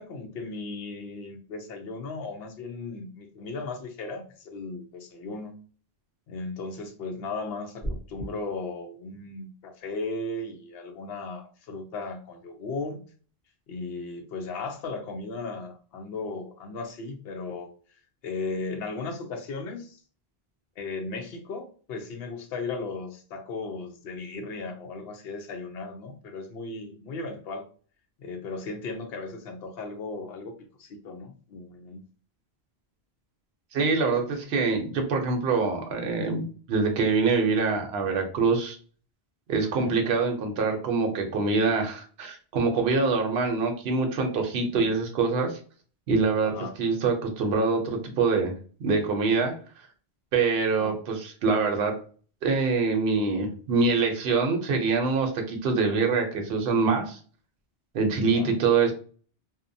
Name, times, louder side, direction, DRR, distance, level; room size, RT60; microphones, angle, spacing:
voice 1, 0.0-5.6 6.3-13.0 13.7-17.7 18.2-20.0 20.8-27.6 28.2-30.5 30.8-32.0 39.7-39.9 44.7-44.9 46.4-46.7 50.8-51.0 58.3-58.5, left 3 dB, 70° left, 4 dB, 0.8 m, -36 dB
sound 1, 7.8-8.3, equal, 10° left, 0.8 m, -33 dB
voice 2, 33.7-38.8 39.5-45.6 46.1-48.5 48.8-49.5 50.3-52.0 52.4-57.2 57.9-58.9, right 4 dB, 70° right, 3 dB, 0.8 m, -25 dB
2.7 x 2.0 x 2.6 m, 0.41 s
omnidirectional pair, 1.1 m